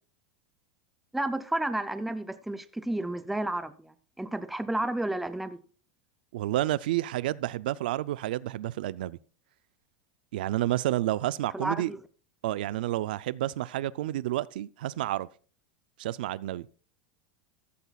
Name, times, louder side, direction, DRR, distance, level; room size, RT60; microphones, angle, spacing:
voice 1, 1.1-5.6 11.5-12.0, right 1 dB, 5° right, 0.4 m, -31 dB
voice 2, 6.3-9.2 10.3-11.9 12.4-15.3 16.0-16.7, right 14 dB, 80° right, 0.4 m, -30 dB
14.0 x 12.5 x 2.3 m
supercardioid pair, 175°, 5 cm